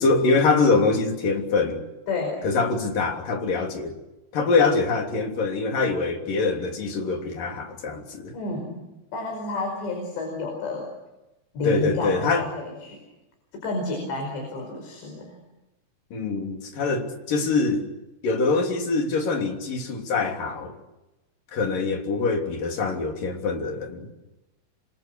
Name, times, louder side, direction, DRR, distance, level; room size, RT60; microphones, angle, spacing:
voice 1, 0.0-1.8 2.4-3.9 4.3-8.3 11.6-12.5 16.1-17.8 18.2-20.8 21.5-24.1, left 4 dB, 50° left, 4.6 m, -24 dB
voice 2, 2.1-2.5 8.3-8.8 9.1-10.9 11.5-13.0 13.6-15.4, left 2 dB, 75° left, 7.3 m, -30 dB
27.5 x 26.0 x 6.5 m
omnidirectional pair, 5.1 m